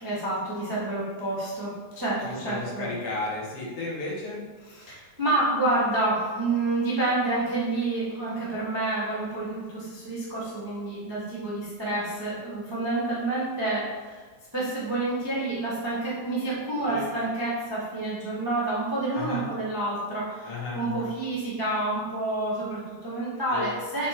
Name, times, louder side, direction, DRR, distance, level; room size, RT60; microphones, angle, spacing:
voice 1, 0.0-2.9 4.7-14.2 14.5-24.1, right 2 dB, 25° right, -8 dB, 0.5 m, -28 dB
voice 2, 2.2-4.4 16.9-17.1 19.1-19.5 20.4-21.1 23.5-23.7, left 2 dB, 60° left, -5 dB, 2.1 m, -33 dB
5.9 x 4.1 x 4.3 m, 1.4 s
omnidirectional pair, 3.4 m